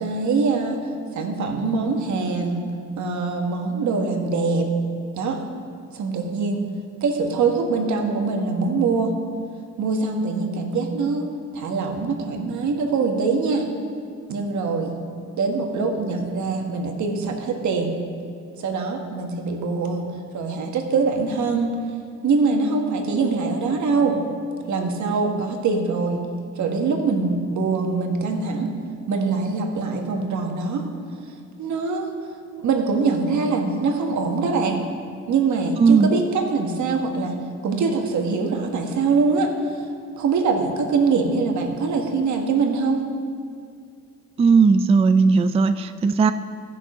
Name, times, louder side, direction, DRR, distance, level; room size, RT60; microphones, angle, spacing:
voice 1, 0.0-4.7 5.1-5.4 5.9-6.7 7.0-9.2 9.8-13.7 14.3-15.0 15.4-18.0 18.6-21.7 22.2-24.2 24.7-26.3 26.6-28.7 29.1-30.9 31.3-32.1 32.6-34.9 35.3-39.9 40.1-43.0, right 4 dB, 70° right, 2 dB, 1.5 m, -23 dB
voice 2, 35.8-36.1 44.4-46.3, right 5 dB, 20° right, 10 dB, 0.3 m, -16 dB
14.0 x 6.2 x 5.1 m, 2.2 s
cardioid pair, 90°, 30 cm